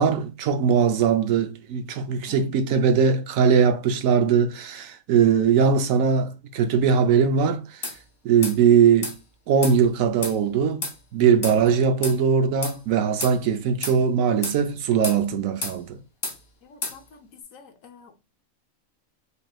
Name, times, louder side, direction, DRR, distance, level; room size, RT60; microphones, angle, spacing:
voice 1, 0.0-7.8 8.2-9.1 9.5-10.8 11.1-16.0, right 6 dB, 75° right, 1.0 m, -20 dB
sound 1, 7.8-8.0 8.4-8.6 9.0-9.2 9.6-9.8 10.2-10.4 10.8-11.0 11.4-11.6 12.0-12.2 12.6-12.8 13.2-13.4 13.8-14.0 14.4-14.6 15.0-15.2 15.6-15.8 16.2-16.4 16.8-17.0, left 3 dB, 50° left, 1.4 m, -31 dB
voice 2, 16.7-17.0 17.5-18.2, left 5 dB, 75° left, 1.1 m, -46 dB
5.1 x 3.0 x 2.3 m
omnidirectional pair, 1.4 m